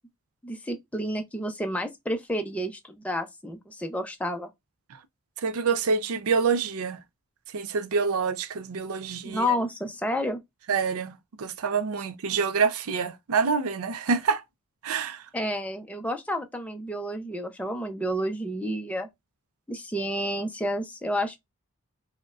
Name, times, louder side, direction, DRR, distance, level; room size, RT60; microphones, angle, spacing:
voice 1, 0.4-4.5 9.2-10.4 15.3-19.1 19.7-21.4, equal, 5° left, 0.5 m, -30 dB
voice 2, 5.4-7.0 7.5-9.5 10.7-14.4 14.8-15.2, right 5 dB, 75° right, 0.5 m, -26 dB
5.0 x 2.1 x 2.3 m
head